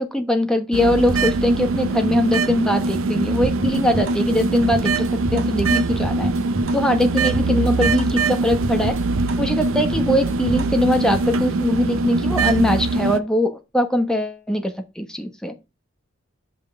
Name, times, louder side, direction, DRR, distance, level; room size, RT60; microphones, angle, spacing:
voice 1, 0.0-6.3 6.7-9.0 9.4-15.5, left 1 dB, 5° left, 6 dB, 1.0 m, -21 dB
sound 1, 0.7-13.2, right 3 dB, 90° right, 0.6 m, -22 dB
sound 2, 3.4-11.3, right 1 dB, 70° right, 2.1 m, -32 dB
5.5 x 5.4 x 6.2 m, 0.27 s
head